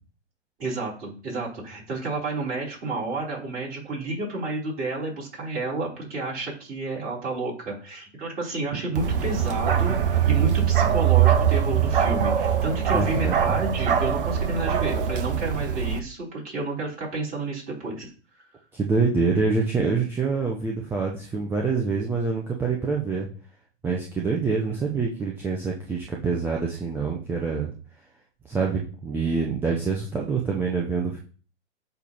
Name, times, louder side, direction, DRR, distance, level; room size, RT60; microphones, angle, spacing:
voice 1, 0.6-18.1, right 2 dB, 25° right, -4 dB, 4.1 m, -30 dB
Bark, 9.0-16.0, right 9 dB, 50° right, 0.9 m, -22 dB
voice 2, 12.9-13.4 18.7-23.3 23.8-27.7 28.4-31.2, right 4 dB, 5° right, -1 dB, 0.6 m, -26 dB
8.2 x 3.3 x 5.4 m, 0.39 s
figure-of-eight pair, 115°, 35 cm